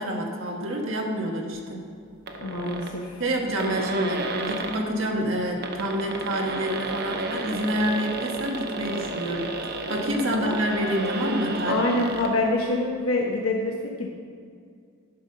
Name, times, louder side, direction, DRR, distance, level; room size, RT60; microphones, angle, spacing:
voice 1, 0.0-1.8 3.2-11.9, equal, 65° right, 0 dB, 1.3 m, -28 dB
sound 1, 2.3-2.9 3.3-3.4 3.6-4.9 5.5-12.3, right 2 dB, 50° right, 0.8 m, -32 dB
voice 2, 2.4-3.2 10.3-10.6 11.7-14.1, left 2 dB, 85° left, -1 dB, 1.0 m, -26 dB
11.0 x 5.3 x 5.6 m, 2.2 s
head